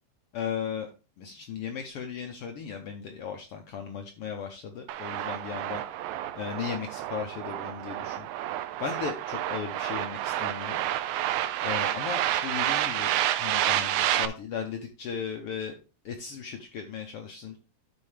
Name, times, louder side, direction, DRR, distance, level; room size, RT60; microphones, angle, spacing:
voice 1, 0.3-0.9 1.2-5.8 6.4-8.3 8.8-10.8 11.6-15.8 16.0-17.6, left 7 dB, 75° left, 4 dB, 1.4 m, -36 dB
sound 1, 4.9-14.3, right 12 dB, 85° right, 2.0 m, -29 dB
12.5 x 4.4 x 3.3 m, 0.30 s
omnidirectional pair, 3.4 m